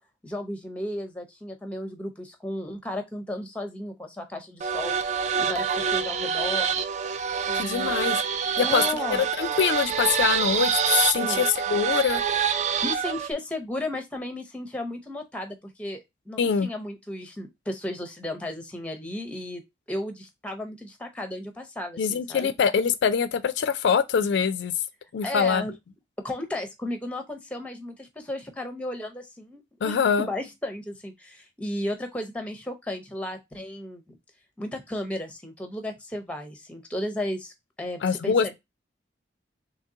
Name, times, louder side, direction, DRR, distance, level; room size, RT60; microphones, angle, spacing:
voice 1, 0.2-5.0 5.4-6.7 7.5-8.0 8.6-9.2 11.2-11.5 12.8-19.6 19.9-22.5 25.2-25.7 26.2-34.2 34.6-38.6, left 1 dB, 5° left, 0.6 m, -34 dB
sound 1, 4.6-13.3, right 7 dB, 35° right, 0.3 m, -26 dB
voice 2, 7.5-8.2 8.6-8.8 9.1-12.2 16.4-16.7 22.0-24.7 25.1-25.6 29.8-30.3 38.0-38.6, left 6 dB, 65° left, 0.3 m, -24 dB
3.6 x 3.1 x 2.7 m
head